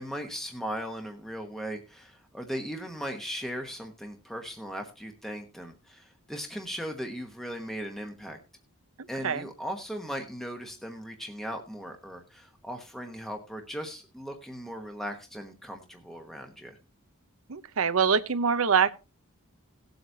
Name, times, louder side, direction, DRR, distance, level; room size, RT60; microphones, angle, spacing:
voice 1, 0.0-8.4 9.1-16.8, equal, ahead, 1.1 m, -38 dB
voice 2, 17.5-18.9, right 6 dB, 65° right, 0.7 m, -24 dB
18.5 x 7.9 x 2.7 m
head